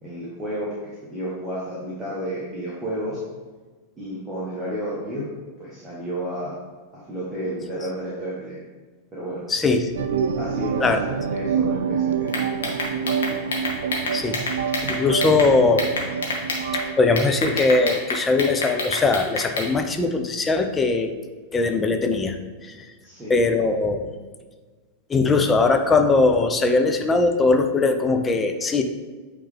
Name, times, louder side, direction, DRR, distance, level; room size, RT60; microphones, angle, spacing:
voice 1, 0.0-3.2 4.0-5.3 5.6-6.6 7.1-8.6 9.1-9.4 10.3-12.3 23.0-23.3, right 1 dB, 15° right, -8 dB, 1.5 m, -31 dB
voice 2, 9.5-9.9 10.8-11.0 14.1-14.4 14.9-15.8 17.0-21.1 21.5-22.4 22.7-22.9 23.3-24.2 25.1-28.8, left 3 dB, 15° left, 6 dB, 0.6 m, -20 dB
sound 1, 9.9-16.9, right 7 dB, 65° right, 0.3 m, -26 dB
sound 2, 12.3-15.5 15.8-16.8 17.2-19.7, left 3 dB, 65° left, 1.2 m, -27 dB
8.6 x 3.3 x 3.4 m, 1.4 s
figure-of-eight pair, 90°, 0 cm